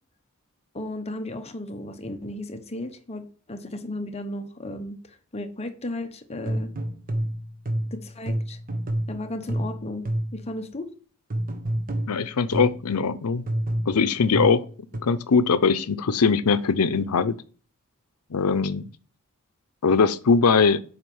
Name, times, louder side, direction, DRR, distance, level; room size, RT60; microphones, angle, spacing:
voice 1, 0.7-6.7 7.9-8.6 9.1-10.9, left 1 dB, 30° left, 1.0 m, -35 dB
sound 1, 6.5-10.5 11.3-12.9 13.5-15.0, right 1 dB, 40° right, 1.2 m, -29 dB
voice 2, 12.1-13.5 13.9-14.7 14.9-17.4 18.3-18.9 19.8-20.8, left 5 dB, 85° left, 0.6 m, -21 dB
8.0 x 5.1 x 5.4 m
head